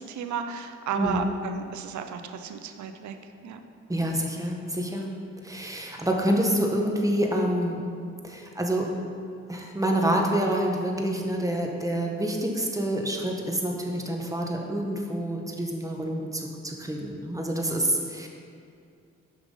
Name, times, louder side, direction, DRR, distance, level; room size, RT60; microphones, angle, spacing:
voice 1, 0.0-3.6, right 6 dB, 75° right, 7 dB, 0.8 m, -34 dB
voice 2, 0.9-1.3 3.9-5.1 5.4-7.8 8.2-8.9 9.5-18.3, right 1 dB, 10° right, 0 dB, 1.6 m, -27 dB
7.7 x 6.1 x 5.7 m, 2.4 s
supercardioid pair, 55°, 29 cm